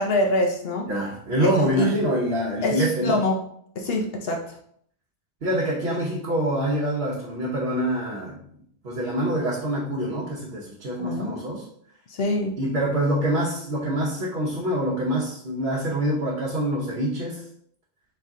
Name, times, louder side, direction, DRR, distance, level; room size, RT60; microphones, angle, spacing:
voice 1, 0.0-0.9 1.4-1.9 2.6-3.4 3.8-4.6 11.0-11.6 12.1-12.6, left 1 dB, 65° left, 2 dB, 0.8 m, -25 dB
voice 2, 0.9-3.2 5.4-8.4 8.8-11.6 12.6-17.4, right 1 dB, 65° right, -5 dB, 1.1 m, -25 dB
4.1 x 3.3 x 3.6 m, 0.65 s
omnidirectional pair, 1.1 m